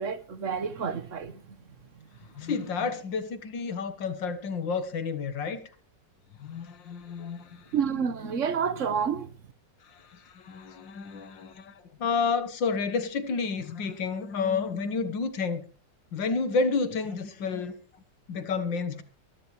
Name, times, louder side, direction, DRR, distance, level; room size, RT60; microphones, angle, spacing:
voice 1, 0.0-1.6 7.7-9.3, right 7 dB, 45° right, 1.4 m, -29 dB
voice 2, 2.3-5.7 6.4-7.7 9.8-15.6 16.1-17.7 18.3-19.0, left 4 dB, 80° left, 2.2 m, -30 dB
24.5 x 11.5 x 3.2 m
omnidirectional pair, 2.0 m